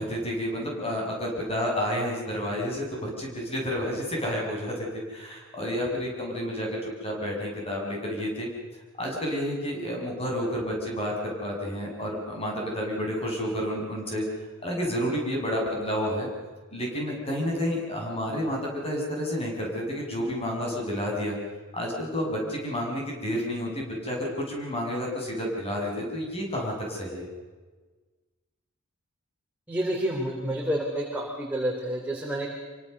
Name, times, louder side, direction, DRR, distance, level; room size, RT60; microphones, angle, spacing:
voice 1, 0.0-8.5 9.0-14.2 14.6-16.3 16.7-21.4 21.7-27.3, equal, 25° left, -1 dB, 6.8 m, -30 dB
voice 2, 29.7-32.5, right 1 dB, 10° right, -2 dB, 3.4 m, -29 dB
26.0 x 24.0 x 6.7 m, 1.3 s
head